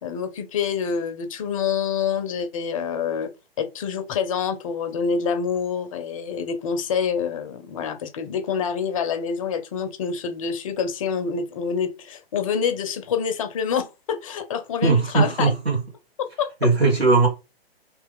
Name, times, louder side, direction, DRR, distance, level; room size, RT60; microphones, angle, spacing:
voice 1, 0.0-3.3 3.6-15.5 16.2-16.5, left 6 dB, 35° left, 0.5 m, -27 dB
voice 2, 14.8-15.7 16.6-17.3, right 3 dB, 90° right, 1.6 m, -18 dB
3.1 x 2.8 x 3.5 m
figure-of-eight pair, 125°, 31 cm